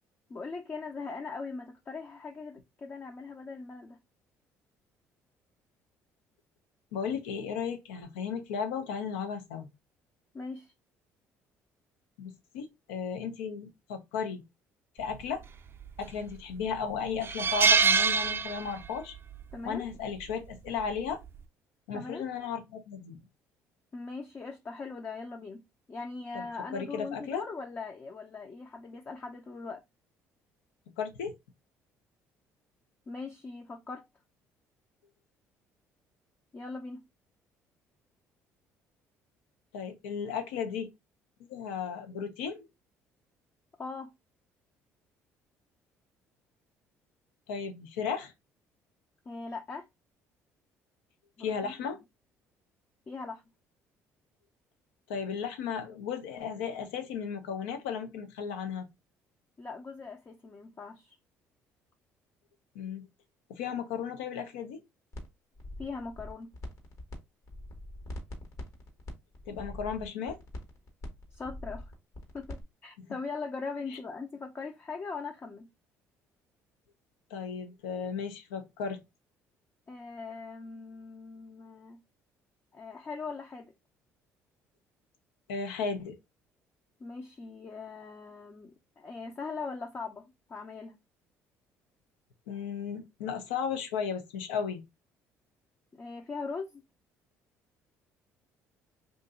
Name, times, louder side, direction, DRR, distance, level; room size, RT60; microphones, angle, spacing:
voice 1, 0.3-4.0 10.3-10.7 19.5-19.9 21.9-22.3 23.9-29.8 33.1-34.0 36.5-37.0 43.8-44.1 49.3-49.9 51.4-52.0 53.1-53.4 59.6-61.2 65.8-66.5 71.3-71.9 72.3-75.7 79.9-82.0 82.7-83.7 87.0-91.0 95.9-96.8, left 4 dB, 35° left, 0.5 m, -40 dB
voice 2, 6.9-9.7 12.2-14.4 15.0-15.4 16.0-19.2 19.6-21.2 21.9-23.2 26.3-26.4 26.7-27.4 31.0-31.3 39.7-40.9 41.5-42.7 47.5-48.3 51.4-52.0 55.1-58.9 62.7-63.0 63.5-64.8 69.5-70.4 73.0-73.1 77.3-79.0 85.5-86.2 92.5-94.8, left 6 dB, 90° left, 0.7 m, -35 dB
sound 1, 15.8-16.3 16.7-16.8 17.2-19.0 19.3-19.5 20.8-21.1, right 5 dB, 40° right, 0.4 m, -25 dB
sound 2, 65.1-65.3 65.6-67.2 67.4-72.6, left 1 dB, 55° left, 1.3 m, -43 dB
2.8 x 2.5 x 3.5 m
supercardioid pair, 65°, 6 cm